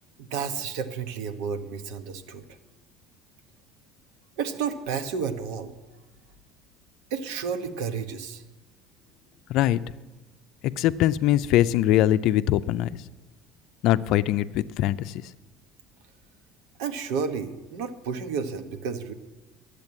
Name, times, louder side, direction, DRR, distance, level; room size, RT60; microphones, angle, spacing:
voice 1, 0.2-2.4 4.4-5.7 7.1-8.4 16.8-19.1, right 6 dB, 80° right, 9 dB, 1.1 m, -31 dB
voice 2, 9.5-9.8 10.6-12.9 13.8-15.2, left 13 dB, 60° left, 14 dB, 0.4 m, -22 dB
10.5 x 8.2 x 9.6 m, 1.2 s
cardioid pair, 135°, 0 cm